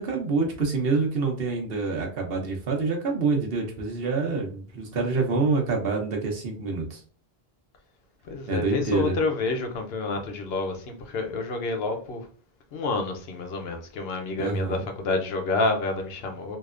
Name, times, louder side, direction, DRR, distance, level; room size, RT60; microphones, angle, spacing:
voice 1, 0.0-7.0 8.5-9.2 14.4-14.9, right 4 dB, 65° right, 1.0 m, -26 dB
voice 2, 8.3-12.3 12.7-16.6, left 3 dB, 75° left, 0.9 m, -28 dB
3.3 x 2.8 x 2.4 m
omnidirectional pair, 1.0 m